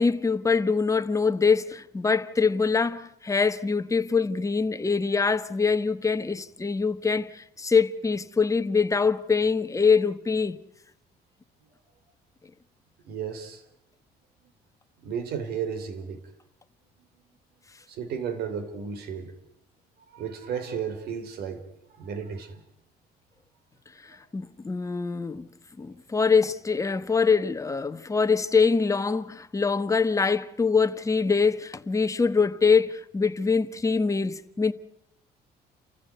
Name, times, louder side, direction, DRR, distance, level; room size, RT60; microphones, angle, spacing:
voice 1, 0.0-10.6 24.0-25.5 25.8-34.7, left 5 dB, 20° left, 1.3 m, -24 dB
voice 2, 13.0-13.6 15.0-16.2 17.9-19.3 20.1-21.6 22.0-22.6, right 7 dB, 70° right, 3.9 m, -33 dB
29.5 x 15.0 x 9.3 m
cardioid pair, 110°, 17 cm